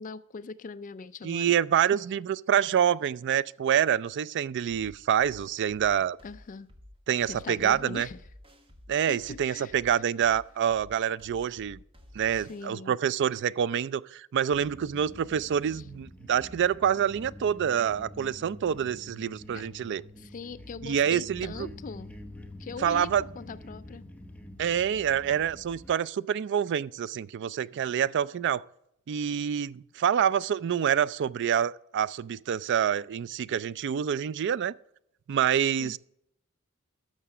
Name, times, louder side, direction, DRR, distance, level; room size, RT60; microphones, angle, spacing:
voice 1, 0.0-1.8 6.2-6.7 7.3-8.2 9.1-9.7 12.3-13.0 15.7-15.8 19.5-19.7 20.2-22.1 22.6-24.0 35.8-36.0, left 4 dB, 35° left, 0.4 m, -41 dB
voice 2, 1.2-6.2 7.1-8.1 8.9-11.8 12.1-20.0 20.8-21.7 22.8-23.2 24.6-28.6 29.1-34.8 35.3-36.0, right 8 dB, 55° right, 0.3 m, -27 dB
sound 1, 4.7-12.7, left 1 dB, 25° right, 1.3 m, -52 dB
sound 2, 14.5-26.0, left 1 dB, 5° left, 0.8 m, -47 dB
12.5 x 6.5 x 4.9 m
head